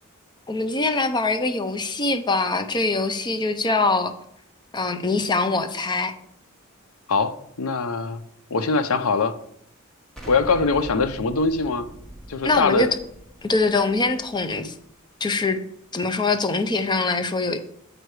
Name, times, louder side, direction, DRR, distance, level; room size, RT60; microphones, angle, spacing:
voice 1, 0.5-4.1 4.7-6.1 12.4-12.9 13.4-14.7 15.2-15.6 15.9-17.6, left 3 dB, 20° left, 9 dB, 0.6 m, -23 dB
voice 2, 7.1-8.2 8.5-9.3 10.3-11.9 12.3-12.9, left 4 dB, 85° left, 12 dB, 0.6 m, -22 dB
Explosion, 10.2-15.0, right 1 dB, ahead, 1.2 m, -42 dB
7.8 x 4.6 x 4.7 m, 0.70 s
head